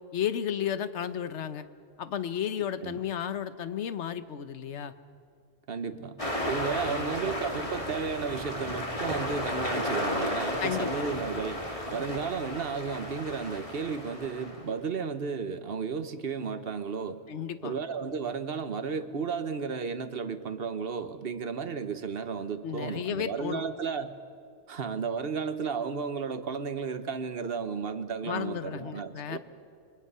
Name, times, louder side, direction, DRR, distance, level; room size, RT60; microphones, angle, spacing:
voice 1, 0.1-1.6 2.0-4.9 6.9-7.1 10.6-10.9 17.3-17.7 22.6-23.6 28.2-29.4, left 9 dB, 65° left, 12 dB, 1.2 m, -33 dB
voice 2, 5.7-6.2 6.4-11.6 11.9-17.2 17.6-24.2 24.7-29.4, right 5 dB, 50° right, 10 dB, 1.2 m, -33 dB
sound 1, 6.2-14.6, left 1 dB, 25° left, 2.7 m, -33 dB
28.0 x 23.0 x 5.6 m, 2.2 s
omnidirectional pair, 1.3 m